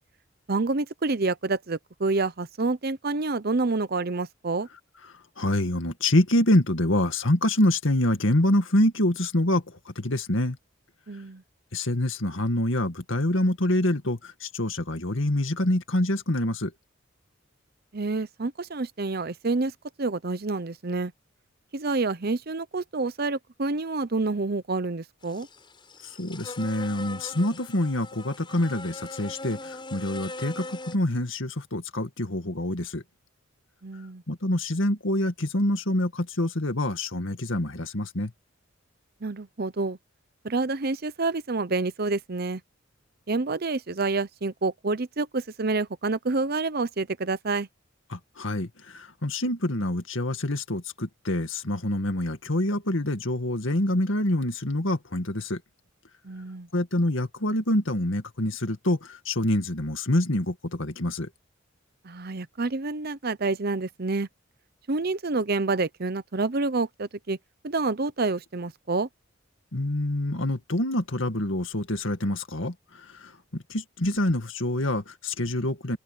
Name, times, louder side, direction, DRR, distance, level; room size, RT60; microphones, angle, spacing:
voice 1, 0.5-4.7 11.1-11.4 17.9-19.7 20.0-21.1 21.7-25.5 33.8-34.2 39.2-40.0 40.4-42.6 43.3-47.7 56.2-56.7 62.0-64.3 64.9-67.4 67.6-69.1, right 3 dB, 50° right, 0.8 m, -28 dB
voice 2, 5.4-10.6 11.7-16.7 26.2-33.0 34.3-38.3 48.1-55.6 56.7-61.3 69.7-72.7 73.2-76.0, left 1 dB, 65° left, 2.1 m, -26 dB
sound 1, 25.2-31.0, left 2 dB, 25° left, 8.0 m, -40 dB
open air
head